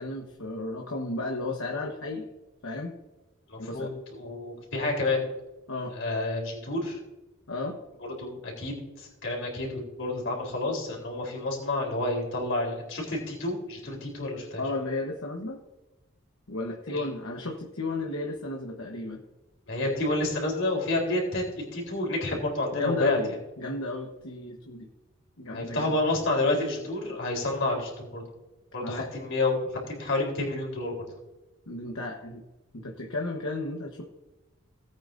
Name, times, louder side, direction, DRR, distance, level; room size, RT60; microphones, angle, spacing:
voice 1, 0.0-2.3 2.6-2.9 3.6-3.9 5.7-5.9 7.5-7.8 14.6-15.6 16.5-19.2 22.7-24.9 25.4-25.9 28.8-29.1 31.7-32.4 32.7-34.0, left 2 dB, 80° left, 0 dB, 1.2 m, -34 dB
voice 2, 3.5-5.3 6.0-7.0 8.0-14.6 16.9-17.1 19.7-23.2 25.5-28.2 28.7-29.6 29.9-31.0, left 2 dB, 60° left, -1 dB, 3.8 m, -29 dB
18.0 x 8.8 x 2.6 m, 1.0 s
head